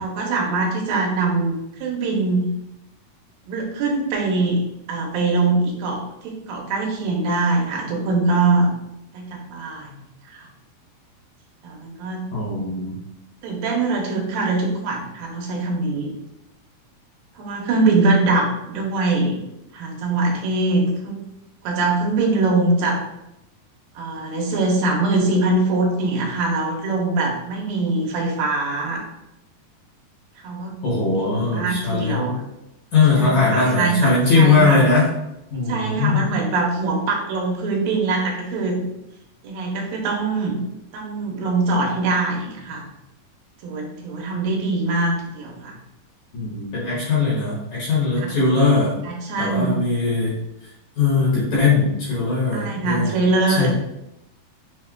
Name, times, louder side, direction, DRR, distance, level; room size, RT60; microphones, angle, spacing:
voice 1, 0.0-1.5 1.8-2.5 3.5-4.6 4.9-8.7 9.1-10.5 11.6-12.2 13.4-16.1 17.4-19.4 19.7-21.2 21.6-23.0 24.0-29.0 30.4-30.7 31.5-32.4 33.1-34.8 35.7-38.8 39.4-40.6 40.9-42.9 43.6-45.8 48.2-48.3 49.0-49.8 52.5-53.7, right 3 dB, 85° right, -1 dB, 2.4 m, -22 dB
voice 2, 12.3-13.0 30.8-32.3 32.9-35.1 35.5-36.2 46.3-49.0 49.4-50.3 51.0-53.2 53.5-53.7, left 4 dB, 65° left, -7 dB, 2.1 m, -20 dB
6.1 x 2.1 x 2.3 m, 0.86 s
omnidirectional pair, 4.1 m